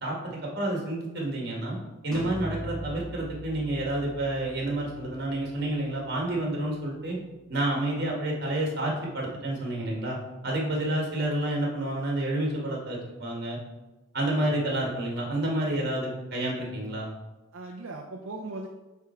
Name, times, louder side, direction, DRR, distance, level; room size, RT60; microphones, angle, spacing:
voice 1, 0.0-1.8 2.0-7.2 7.5-10.2 10.4-13.6 14.1-17.1, right 1 dB, 50° right, -2 dB, 1.8 m, -29 dB
sound 1, 2.1-7.8, left 1 dB, 5° left, 1.2 m, -42 dB
voice 2, 17.5-18.7, right 2 dB, 70° right, 0 dB, 0.6 m, -39 dB
8.4 x 3.6 x 4.4 m, 1.1 s
head